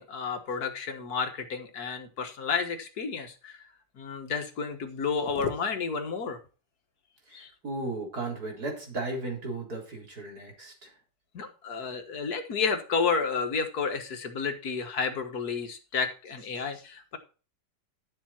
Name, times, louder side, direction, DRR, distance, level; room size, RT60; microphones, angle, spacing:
voice 1, 0.0-3.6 4.0-6.4 7.3-7.5 11.3-17.2, left 5 dB, 60° left, 1.9 m, -31 dB
voice 2, 7.3-10.9, right 2 dB, 60° right, 4.3 m, -35 dB
11.5 x 7.4 x 4.4 m
omnidirectional pair, 1.9 m